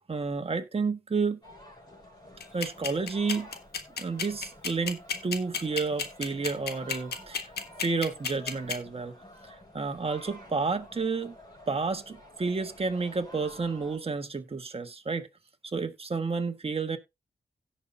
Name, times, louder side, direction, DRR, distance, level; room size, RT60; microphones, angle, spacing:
voice 1, 0.1-1.4 2.5-3.5 4.0-7.5 7.8-9.1 9.5-11.3 11.7-15.3 15.6-17.0, right 4 dB, 35° right, 1.4 m, -31 dB
sound 1, 1.4-14.0, left 1 dB, 25° left, 6.4 m, -50 dB
sound 2, 2.4-8.7, left 6 dB, 80° left, 1.4 m, -31 dB
17.0 x 5.7 x 2.6 m
cardioid pair, 60°, 16 cm